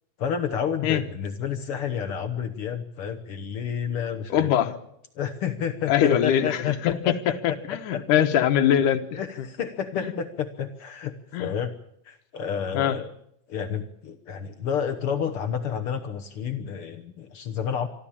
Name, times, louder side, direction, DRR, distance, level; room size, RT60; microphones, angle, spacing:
voice 1, 0.2-4.5 5.2-8.0 9.1-11.7 12.1-13.1 13.5-17.9, left 7 dB, 60° left, 8 dB, 1.6 m, -30 dB
voice 2, 4.3-4.8 5.9-9.2 10.0-10.1 11.3-11.5 12.8-13.0, left 10 dB, 85° left, 7 dB, 2.7 m, -22 dB
25.0 x 13.0 x 8.7 m, 0.73 s
omnidirectional pair, 3.5 m